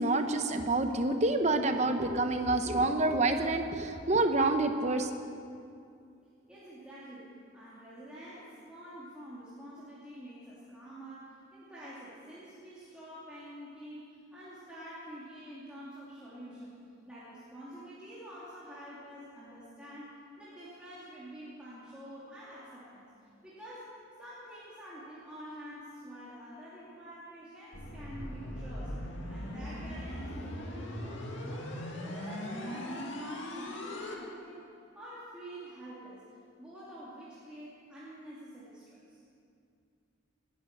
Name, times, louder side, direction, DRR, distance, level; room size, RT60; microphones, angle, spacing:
voice 1, 0.0-5.1, right 2 dB, 35° right, 7 dB, 1.0 m, -27 dB
voice 2, 6.5-23.1 23.4-23.9 24.2-29.0 29.3-34.6 34.9-36.2 36.6-39.2, equal, 5° right, -10 dB, 2.7 m, -47 dB
sound 1, 27.7-34.1, left 1 dB, 70° left, 2.2 m, -39 dB
19.5 x 11.0 x 6.7 m, 2.5 s
head